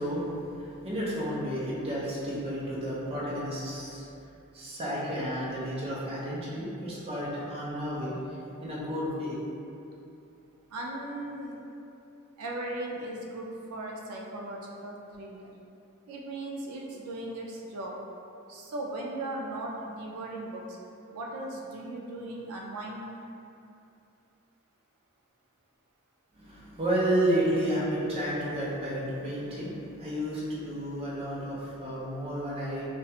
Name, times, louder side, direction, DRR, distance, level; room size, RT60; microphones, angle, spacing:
voice 1, 0.0-4.1 4.5-8.2 8.6-9.4 26.3-32.8, right 1 dB, 25° right, -7 dB, 0.5 m, -31 dB
voice 2, 10.7-11.5 12.4-15.5 16.1-17.9 18.5-20.6 21.1-23.1, right 1 dB, 85° right, -2 dB, 0.3 m, -37 dB
2.3 x 2.1 x 2.7 m, 2.7 s
head